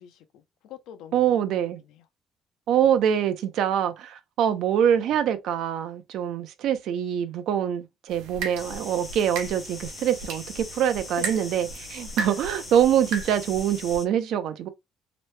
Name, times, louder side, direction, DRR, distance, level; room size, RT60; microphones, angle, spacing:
voice 1, 0.0-2.0, left 10 dB, 80° left, 0.6 m, -47 dB
voice 2, 1.1-1.8 2.7-14.7, right 9 dB, 60° right, 0.5 m, -24 dB
sound 1, 8.1-14.0, right 4 dB, 90° right, 0.8 m, -37 dB
sound 2, 8.6-14.1, left 3 dB, 20° left, 0.4 m, -42 dB
3.0 x 2.1 x 3.1 m
cardioid pair, 165°, 0 cm